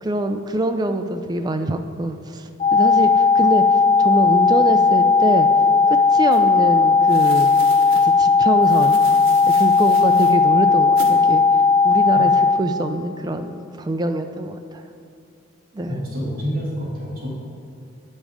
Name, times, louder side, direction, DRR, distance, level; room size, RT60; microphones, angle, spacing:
voice 1, 0.0-5.5 5.9-7.5 8.0-9.0 9.5-14.8 15.7-16.0, right 1 dB, 20° right, 7 dB, 0.3 m, -24 dB
sound 1, 2.6-12.6, left 4 dB, 30° left, 0.6 m, -16 dB
sound 2, 6.3-6.4 7.1-8.1 8.6-10.4 11.0-11.1, right 4 dB, 75° right, 1.0 m, -39 dB
voice 2, 15.9-17.3, equal, 40° right, -6 dB, 1.9 m, -28 dB
8.9 x 5.3 x 4.8 m, 2.7 s
head